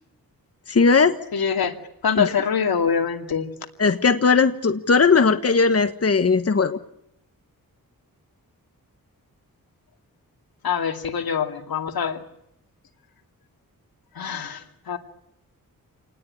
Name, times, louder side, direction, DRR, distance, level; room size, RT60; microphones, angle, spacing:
voice 1, 0.7-1.2 2.2-2.3 3.8-6.8, left 4 dB, 45° left, 9 dB, 1.5 m, -18 dB
voice 2, 1.3-1.8 2.0-3.5 10.6-12.2 14.1-15.0, left 7 dB, 90° left, 6 dB, 2.5 m, -24 dB
28.0 x 19.5 x 8.7 m, 0.79 s
wide cardioid pair, 80°, 35 cm